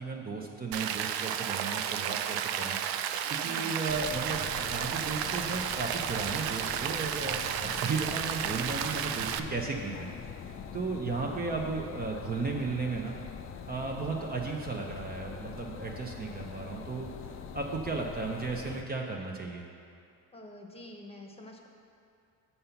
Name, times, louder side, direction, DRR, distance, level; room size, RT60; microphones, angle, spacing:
voice 1, 0.0-2.8 3.3-10.1 10.7-13.2 13.7-17.1 17.3-19.7, right 4 dB, 25° right, 0 dB, 0.6 m, -35 dB
Rain, 0.7-9.4, right 9 dB, 80° right, 0.5 m, -32 dB
voice 2, 3.4-3.8 11.1-11.5 20.3-21.7, left 1 dB, 15° left, 1 dB, 0.9 m, -47 dB
sound 1, 3.9-18.8, left 6 dB, 40° left, 0.4 m, -43 dB
6.8 x 5.5 x 5.7 m, 2.5 s
cardioid pair, 105°, 35 cm